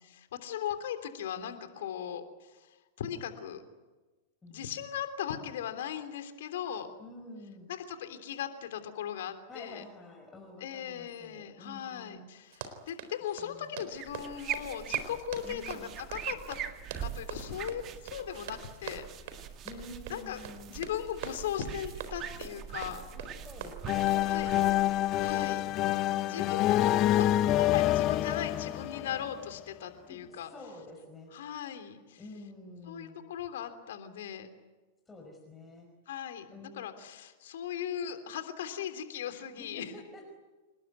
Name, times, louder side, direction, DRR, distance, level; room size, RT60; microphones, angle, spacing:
voice 1, 0.3-3.6 4.5-6.9 7.7-9.8 10.6-16.6 17.0-19.0 20.1-20.4 20.7-23.0 24.3-24.5 25.2-25.6 26.3-30.5 31.3-32.2 32.9-34.5 36.1-39.9, left 9 dB, 60° left, 8 dB, 3.2 m, -38 dB
voice 2, 7.0-7.7 9.5-12.3 13.4-13.8 15.4-15.9 19.6-20.8 23.0-24.8 25.3-26.7 30.1-31.3 32.2-33.2 35.1-35.9 36.5-36.8 39.6-40.3, left 2 dB, 15° left, 1 dB, 5.3 m, -48 dB
Run, 12.4-24.3, right 7 dB, 55° right, 4.0 m, -45 dB
sound 1, 13.9-25.9, right 10 dB, 35° right, 2.0 m, -42 dB
sound 2, 23.9-29.6, left 14 dB, 35° left, 0.8 m, -27 dB
28.5 x 20.0 x 9.5 m, 1.2 s
figure-of-eight pair, 100°, 0 cm